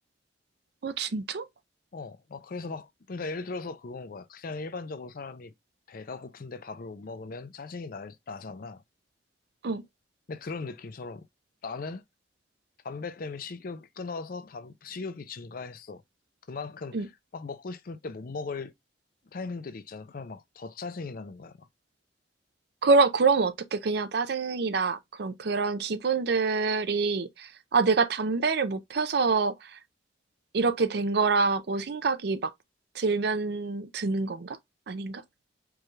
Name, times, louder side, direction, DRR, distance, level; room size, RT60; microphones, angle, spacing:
voice 1, 0.8-1.4 9.6-9.8 16.9-17.1 22.8-29.8 30.5-32.5 32.9-34.6 34.9-35.2, right 4 dB, 60° right, 0.5 m, -26 dB
voice 2, 1.9-5.5 5.9-8.8 10.3-11.2 11.6-12.0 12.8-16.0 16.5-17.0 17.3-18.7 19.3-21.7, left 4 dB, 50° left, 0.5 m, -38 dB
4.7 x 2.3 x 3.2 m
head